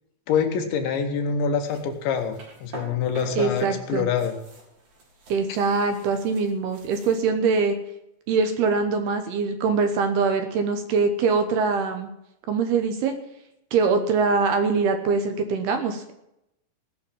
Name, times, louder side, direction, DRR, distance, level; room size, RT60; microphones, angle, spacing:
voice 1, 0.3-4.4 5.5-5.6, left 6 dB, 75° left, 4 dB, 3.6 m, -25 dB
sound 1, 1.6-3.7 4.0-7.3, right 2 dB, 50° right, 4.9 m, -44 dB
voice 2, 3.4-4.1 5.3-7.8 8.3-12.1 12.5-13.2 13.7-16.1, right 4 dB, 70° right, 7 dB, 2.7 m, -23 dB
18.0 x 6.5 x 7.3 m, 0.82 s
omnidirectional pair, 5.4 m